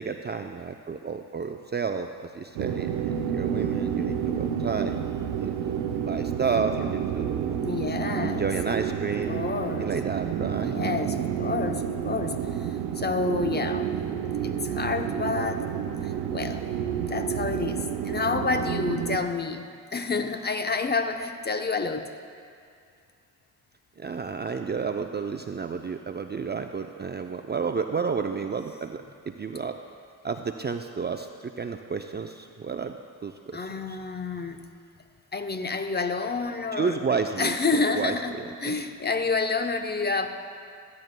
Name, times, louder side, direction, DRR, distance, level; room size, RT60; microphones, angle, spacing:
voice 1, 0.0-5.0 5.4-7.6 8.2-10.8 24.0-29.8 30.2-33.0 33.2-34.0 36.7-38.8, right 5 dB, 25° right, 6 dB, 0.5 m, -31 dB
sound 1, 2.6-19.2, right 8 dB, 85° right, 0.7 m, -30 dB
voice 2, 7.6-8.5 9.3-9.9 10.5-14.0 14.4-15.7 16.0-16.7 17.0-22.1 33.5-34.7 35.3-37.0 37.4-40.3, left 4 dB, 25° left, 6 dB, 0.8 m, -29 dB
15.5 x 10.5 x 2.2 m, 2.3 s
supercardioid pair, 55°, 42 cm